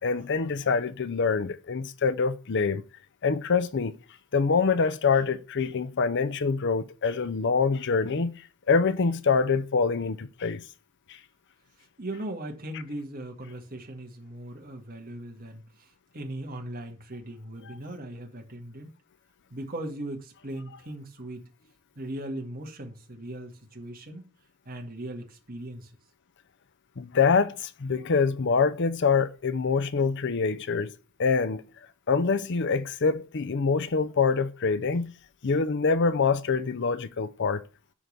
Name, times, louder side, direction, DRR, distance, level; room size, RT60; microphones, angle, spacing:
voice 1, 0.0-2.8 3.2-3.9 4.3-8.4 8.7-10.6 11.1-11.2 27.0-30.9 31.2-31.7 32.1-35.1 35.4-37.6, left 5 dB, 60° left, 0.6 m, -25 dB
voice 2, 12.0-18.9 19.5-21.5 22.0-24.3 24.7-25.9, right 1 dB, 45° right, 2.1 m, -38 dB
11.0 x 3.9 x 6.6 m
head